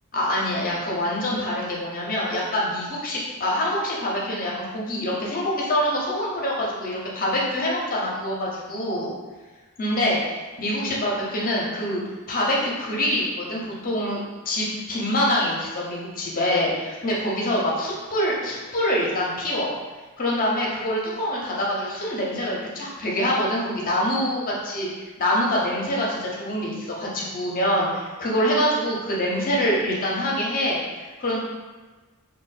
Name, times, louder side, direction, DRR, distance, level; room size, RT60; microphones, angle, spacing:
voice 1, 0.1-9.1 9.8-12.0 12.3-14.2 14.5-19.7 20.2-31.4, left 1 dB, 40° left, -4 dB, 0.7 m, -25 dB
3.1 x 2.2 x 4.1 m, 1.2 s
head